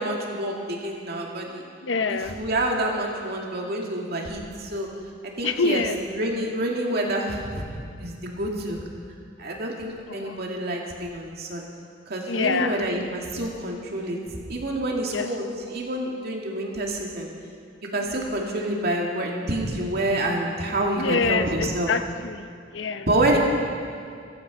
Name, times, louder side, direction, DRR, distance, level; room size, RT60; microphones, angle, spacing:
voice 1, 0.0-1.6 2.1-4.9 5.4-5.8 6.1-7.7 8.0-8.8 9.4-11.7 12.1-14.2 14.5-17.3 17.9-21.9 23.1-23.4, right 1 dB, 55° right, -1 dB, 2.3 m, -27 dB
voice 2, 1.8-2.4 5.4-6.0 10.1-10.4 12.3-12.9 15.1-15.3 18.1-18.2 21.0-23.1, left 4 dB, 75° left, 10 dB, 0.7 m, -26 dB
15.5 x 15.0 x 5.3 m, 2.3 s
head